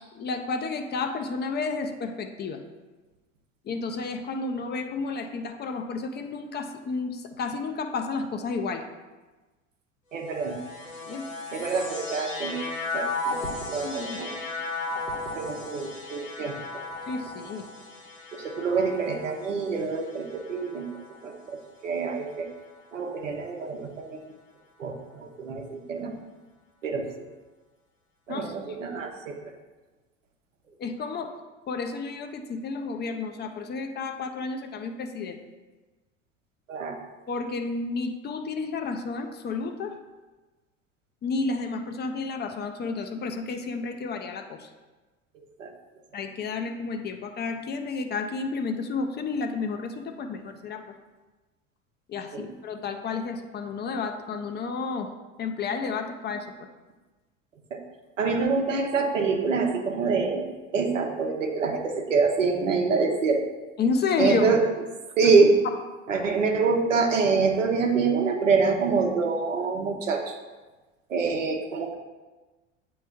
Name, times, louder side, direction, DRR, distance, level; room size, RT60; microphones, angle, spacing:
voice 1, 0.1-2.6 3.7-8.8 11.1-11.3 13.8-14.2 17.1-17.6 28.3-28.5 30.8-31.3 31.7-35.4 37.3-39.9 41.2-44.7 46.1-50.8 52.1-55.1 55.4-56.5 58.3-58.4 63.8-64.5, left 4 dB, 25° left, 6 dB, 0.6 m, -31 dB
voice 2, 10.1-10.6 11.5-12.6 12.9-13.4 13.7-14.3 15.3-16.5 18.3-20.9 21.2-21.6 21.8-22.5 22.9-24.3 24.8-26.1 26.8-27.1 28.3-29.4 36.7-37.0 45.6-45.7 52.3-52.5 57.7-57.8 58.2-60.5 60.7-63.4 64.2-64.6 65.2-65.6 66.1-70.4 71.1-72.0, right 4 dB, 80° right, 3 dB, 0.9 m, -25 dB
sound 1, 10.2-21.7 22.5-23.2, left 2 dB, 85° left, 1.3 m, -36 dB
8.9 x 3.1 x 3.5 m, 1.2 s
figure-of-eight pair, 70°, 37 cm